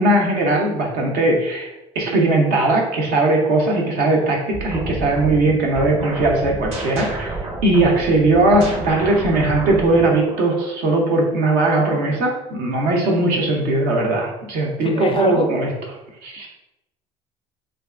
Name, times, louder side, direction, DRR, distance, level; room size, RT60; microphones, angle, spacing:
voice 1, 0.0-1.7 1.9-15.7 16.2-16.5, right 2 dB, 65° right, 0 dB, 0.7 m, -19 dB
sound 1, 4.5-10.7, right 2 dB, 35° right, 0.9 m, -30 dB
voice 2, 14.8-15.5, left 4 dB, 35° left, 5 dB, 0.4 m, -25 dB
2.6 x 2.3 x 2.3 m, 0.95 s
hypercardioid pair, 70°, 16 cm